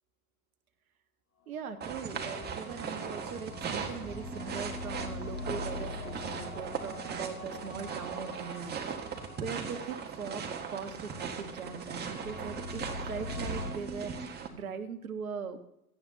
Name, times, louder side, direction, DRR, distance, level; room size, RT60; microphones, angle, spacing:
sound 1, 1.5-13.7, left 2 dB, 65° left, 6.0 m, -44 dB
voice 1, 1.5-9.1 9.4-15.6, right 6 dB, 70° right, 8 dB, 1.5 m, -40 dB
sound 2, 1.8-14.5, right 6 dB, 20° right, 1.6 m, -39 dB
17.0 x 13.5 x 2.8 m, 0.81 s
figure-of-eight pair, 95°, 44 cm